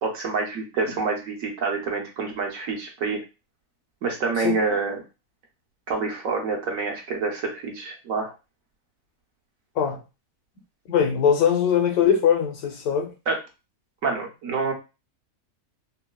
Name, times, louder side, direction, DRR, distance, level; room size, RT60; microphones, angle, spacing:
voice 1, 0.0-3.2 4.0-5.0 5.9-8.3 13.3-13.4 14.0-14.7, right 4 dB, 65° right, 1.1 m, -27 dB
voice 2, 10.9-13.1, left 8 dB, 80° left, 1.2 m, -21 dB
3.8 x 2.1 x 2.3 m
omnidirectional pair, 1.6 m